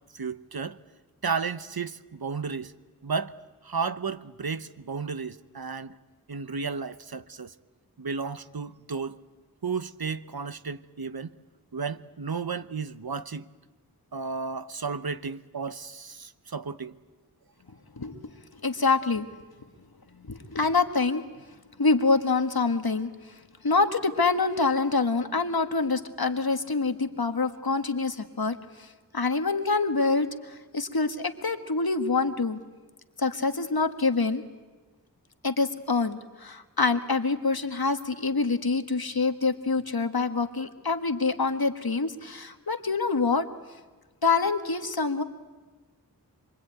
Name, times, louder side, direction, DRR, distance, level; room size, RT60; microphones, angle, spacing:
voice 1, 0.1-0.8 1.2-2.7 3.0-3.3 3.6-6.0 6.3-7.5 8.0-9.2 9.6-11.4 11.7-13.5 14.1-16.9, right 5 dB, 80° right, 0.9 m, -33 dB
voice 2, 18.6-19.3 20.1-21.2 21.8-23.4 23.6-28.9 29.1-32.6 33.2-34.4 35.4-43.5 44.2-45.2, left 4 dB, 80° left, 1.6 m, -26 dB
25.5 x 23.5 x 9.2 m
wide cardioid pair, 40°, 36 cm